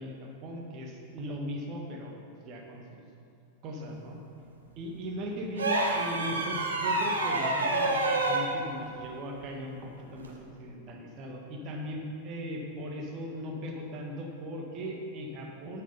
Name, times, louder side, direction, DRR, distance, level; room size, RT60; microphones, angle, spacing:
voice 1, 0.0-2.8 3.6-4.2 4.8-9.8 10.1-15.8, equal, 35° right, 0 dB, 1.9 m, -38 dB
sound 1, 5.6-8.5 10.2-10.4, right 2 dB, 70° right, 1.3 m, -28 dB
9.6 x 8.8 x 5.7 m, 2.7 s
figure-of-eight pair, 90°, 0 cm